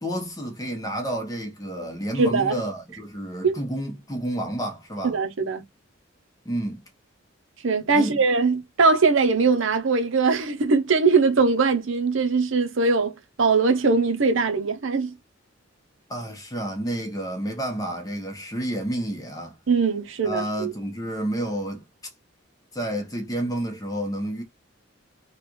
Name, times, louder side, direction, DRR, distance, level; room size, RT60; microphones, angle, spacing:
voice 1, 0.0-5.2 6.4-6.8 7.9-8.2 16.1-19.6 20.2-21.9 22.7-24.4, right 1 dB, 15° left, 0.9 m, -30 dB
voice 2, 2.2-2.5 3.4-3.6 5.0-5.6 7.6-15.1 19.7-20.7, right 4 dB, 70° right, 0.7 m, -21 dB
3.2 x 2.4 x 3.0 m
head